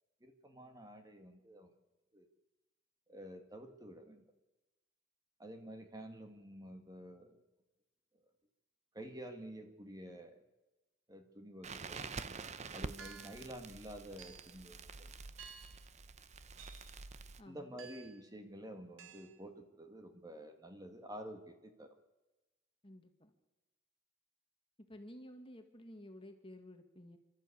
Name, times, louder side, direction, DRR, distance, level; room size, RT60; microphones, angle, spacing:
voice 1, 0.2-1.7 2.1-2.3 3.1-4.2 5.4-7.4 8.9-10.4 11.1-12.1 12.7-15.2 17.5-22.0, right 1 dB, 20° right, 6 dB, 1.7 m, -50 dB
Crackle, 11.6-17.4, right 4 dB, 35° right, 0.7 m, -47 dB
sound 1, 11.9-12.2 13.0-13.5 14.2-14.6 15.4-15.9 16.6-17.0 17.8-18.2 19.0-19.4, right 6 dB, 70° right, 1.5 m, -55 dB
voice 2, 17.4-17.7 22.8-23.3 24.9-27.2, left 1 dB, 30° left, 6 dB, 1.7 m, -53 dB
28.0 x 12.5 x 8.3 m, 1.1 s
head